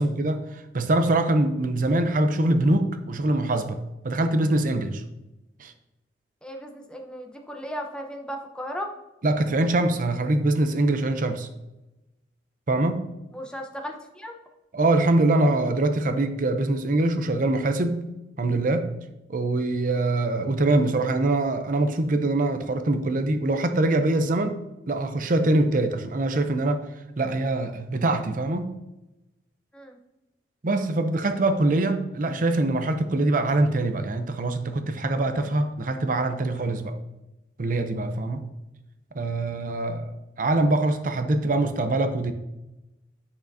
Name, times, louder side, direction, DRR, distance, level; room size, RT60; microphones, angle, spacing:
voice 1, 0.0-5.0 5.6-5.7 9.2-11.5 12.7-13.1 14.7-18.1 18.4-18.9 19.3-24.6 24.9-26.8 27.2-28.7 30.6-37.0 37.6-38.4 39.1-42.3, right 2 dB, 50° right, 8 dB, 0.6 m, -23 dB
voice 2, 6.4-8.9 13.3-14.3 29.7-30.0, equal, 5° left, 3 dB, 0.8 m, -36 dB
8.6 x 6.4 x 2.7 m, 0.96 s
head